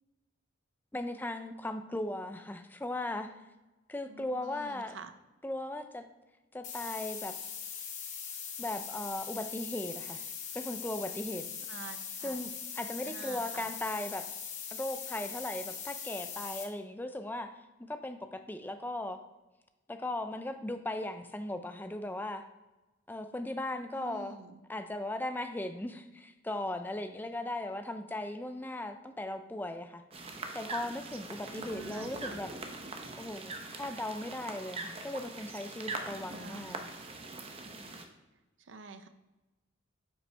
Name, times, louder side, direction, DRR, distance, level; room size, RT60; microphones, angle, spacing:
voice 1, 0.9-3.3 3.9-5.0 5.4-6.1 6.5-7.3 8.6-10.3 10.5-11.5 12.2-14.3 14.7-17.5 17.9-19.2 19.9-22.5 23.1-24.4 24.7-30.0 30.5-32.5 33.2-36.8, left 1 dB, 10° left, 8 dB, 0.4 m, -37 dB
voice 2, 4.1-5.1 11.7-12.5 13.0-13.7 23.9-24.6 31.5-32.4 36.3-36.8 38.6-39.1, right 4 dB, 70° right, 9 dB, 0.6 m, -48 dB
sound 1, 6.6-16.6, left 7 dB, 35° left, 0.9 m, -41 dB
sound 2, 30.1-38.0, right 3 dB, 30° right, 0.7 m, -42 dB
9.5 x 5.5 x 3.3 m, 1.1 s
head